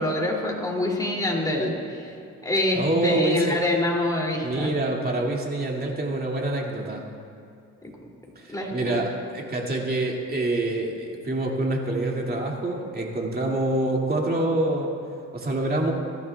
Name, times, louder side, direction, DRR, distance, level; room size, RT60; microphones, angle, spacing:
voice 1, 0.0-1.7 2.0-2.1 2.4-4.7 8.5-9.0, left 1 dB, 10° left, -1 dB, 2.7 m, -25 dB
voice 2, 2.7-3.6 4.4-7.1 8.4-14.9 15.3-15.9, right 2 dB, 30° right, -1 dB, 2.3 m, -26 dB
22.5 x 12.0 x 2.3 m, 2.4 s
cardioid pair, 90°, 30 cm